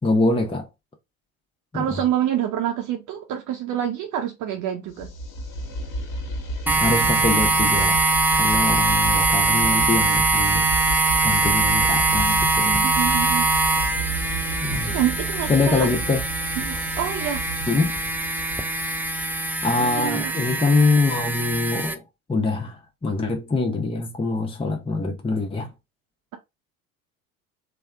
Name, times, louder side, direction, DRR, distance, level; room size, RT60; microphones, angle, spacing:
voice 1, 0.0-0.7 1.7-2.0 6.8-8.0 8.4-10.7 11.2-12.9 14.6-14.9 15.5-16.2 17.7-18.0 19.6-22.0 22.3-25.7, left 3 dB, 15° left, 0.8 m, -24 dB
voice 2, 1.7-5.1 12.8-13.5 14.8-15.9 16.6-17.4 19.8-20.3, right 11 dB, 45° right, 0.8 m, -27 dB
sound 1, 4.9-19.7, right 1 dB, 50° left, 1.4 m, -32 dB
sound 2, 6.7-21.9, right 3 dB, 5° right, 0.4 m, -22 dB
3.4 x 2.2 x 3.4 m
figure-of-eight pair, 65°, 42 cm